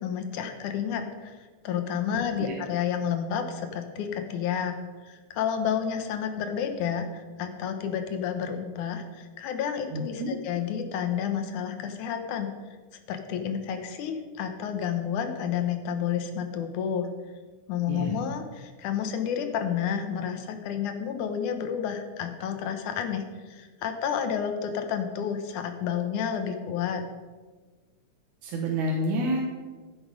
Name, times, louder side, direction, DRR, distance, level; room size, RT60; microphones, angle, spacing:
voice 1, 0.0-4.8 5.0-12.5 13.1-17.1 17.7-27.0, left 8 dB, 75° left, 6 dB, 2.5 m, -30 dB
voice 2, 9.9-10.3 17.9-18.1 28.4-29.4, right 1 dB, 70° right, -1 dB, 2.6 m, -28 dB
14.5 x 7.1 x 5.2 m, 1.4 s
omnidirectional pair, 3.6 m